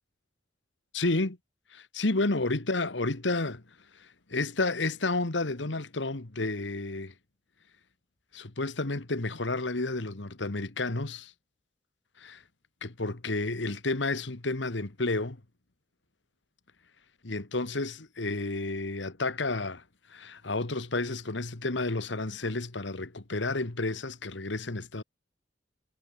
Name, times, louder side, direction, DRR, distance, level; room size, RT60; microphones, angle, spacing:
voice 1, 0.9-1.4 1.7-3.6 4.0-7.1 8.3-11.3 12.2-12.4 12.8-15.4 17.2-19.8 20.1-25.0, left 2 dB, 70° left, 1.7 m, -31 dB
head